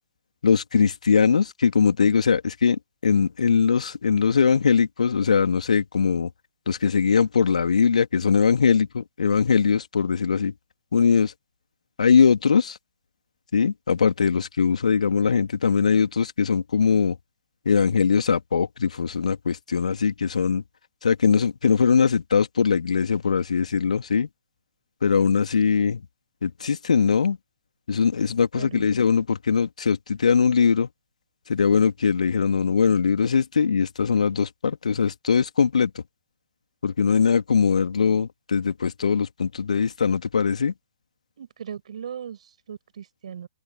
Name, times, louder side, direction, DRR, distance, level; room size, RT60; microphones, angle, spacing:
voice 1, 0.4-6.3 6.7-10.5 10.9-11.3 12.0-12.8 13.5-17.1 17.6-20.6 21.0-24.3 25.0-26.0 26.4-27.4 27.9-30.9 31.5-35.9 36.8-40.7, left 6 dB, 65° left, 2.9 m, -21 dB
voice 2, 28.5-28.9 41.4-43.5, right 8 dB, 55° right, 7.3 m, -38 dB
open air
figure-of-eight pair, 125°, 4 cm